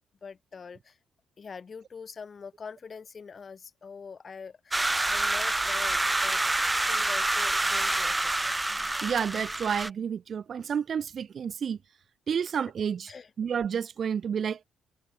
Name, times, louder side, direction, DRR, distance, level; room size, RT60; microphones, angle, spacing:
voice 1, 0.2-1.0 1.4-6.4 6.8-8.7 13.1-13.3, left 5 dB, 40° left, 7.1 m, -44 dB
sound 1, 4.7-9.9, right 2 dB, 15° right, 0.5 m, -27 dB
voice 2, 9.0-11.8 12.3-13.1 13.4-14.6, right 7 dB, 50° right, 1.5 m, -30 dB
cardioid pair, 90°, 0 cm